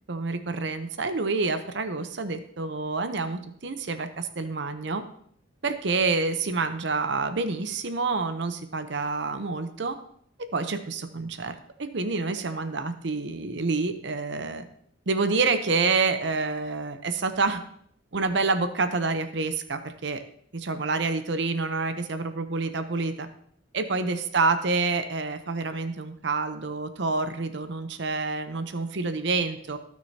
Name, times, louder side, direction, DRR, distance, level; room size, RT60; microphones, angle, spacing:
voice 1, 0.1-5.0 5.6-10.0 10.5-14.7 15.1-17.6 18.1-20.2 20.5-23.3 23.7-29.8, right 4 dB, 65° right, 9 dB, 0.7 m, -28 dB
16.0 x 6.2 x 2.8 m, 0.65 s
head